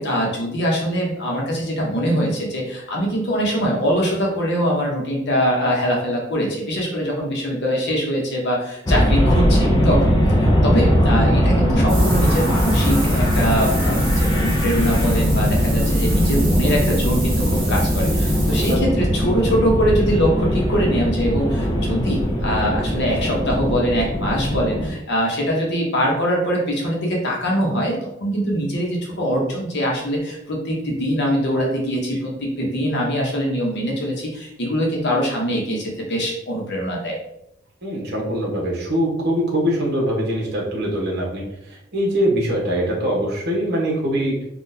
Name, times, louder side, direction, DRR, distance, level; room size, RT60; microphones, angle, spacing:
voice 1, 0.0-37.2, equal, 55° left, -1 dB, 0.9 m, -23 dB
sound 1, 8.9-24.9, equal, 20° left, 0.5 m, -19 dB
sound 2, 11.9-18.8, right 3 dB, 25° right, 1.4 m, -32 dB
voice 2, 37.8-44.4, equal, 55° right, -3 dB, 1.1 m, -23 dB
3.8 x 2.4 x 2.7 m, 0.82 s
head